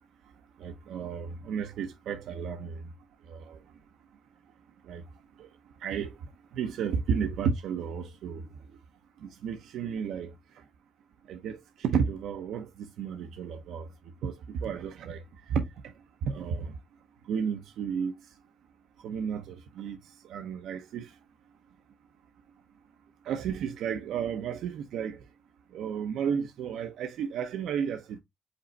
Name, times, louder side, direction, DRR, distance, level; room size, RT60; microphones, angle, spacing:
voice 1, 0.6-2.8 3.3-3.6 4.9-5.0 5.4-5.5 5.8-6.2 6.5-8.5 9.2-10.3 11.3-13.9 14.2-15.2 15.5-15.9 16.2-16.7 17.3-18.1 19.0-20.0 20.2-21.1 23.2-25.2 25.7-28.2, right 7 dB, 80° right, 0.6 m, -32 dB
5.2 x 2.1 x 3.9 m
cardioid pair, 90°, 0 cm